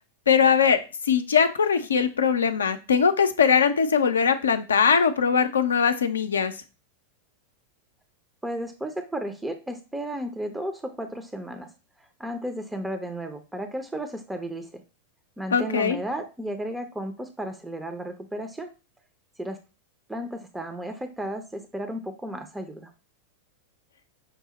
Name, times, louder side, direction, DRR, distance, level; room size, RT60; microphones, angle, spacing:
voice 1, 0.3-0.8 1.1-6.5 15.5-16.0, left 6 dB, 70° left, 9 dB, 0.4 m, -21 dB
voice 2, 8.4-11.7 12.0-14.8 15.4-18.7 19.4-19.6 20.1-22.9, right 1 dB, 5° right, 6 dB, 0.5 m, -33 dB
5.8 x 2.0 x 3.9 m, 0.31 s
figure-of-eight pair, 90°, 0 cm